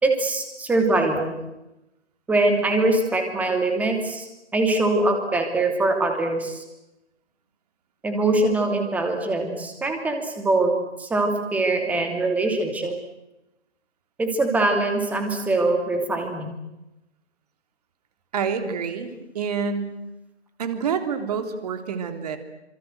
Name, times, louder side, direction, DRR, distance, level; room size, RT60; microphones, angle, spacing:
voice 1, 0.0-1.4 2.3-4.3 4.5-6.6 8.0-10.7 11.0-13.0 14.2-16.6, right 2 dB, 5° right, 4 dB, 2.8 m, -23 dB
voice 2, 18.3-19.9 20.6-22.4, right 6 dB, 35° right, 8 dB, 3.5 m, -27 dB
28.0 x 26.5 x 8.0 m, 0.94 s
figure-of-eight pair, 145°, 35 cm